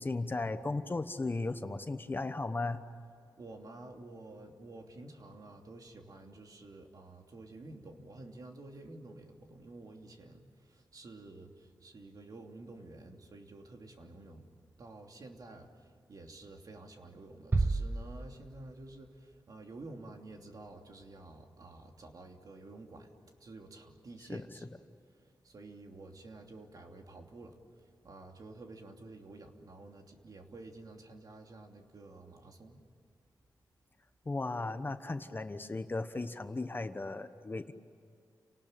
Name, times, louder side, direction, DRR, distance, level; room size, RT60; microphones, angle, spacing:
voice 1, 0.0-2.9 24.3-24.5 34.2-37.7, left 3 dB, 30° left, 9 dB, 1.1 m, -36 dB
voice 2, 3.4-14.5 14.8-23.1 23.4-24.7 25.4-32.8, right 2 dB, 55° right, 3 dB, 2.9 m, -50 dB
sound 1, 17.5-19.1, right 3 dB, 30° right, 0.7 m, -32 dB
29.5 x 19.0 x 8.9 m, 2.4 s
wide cardioid pair, 110°, 7 cm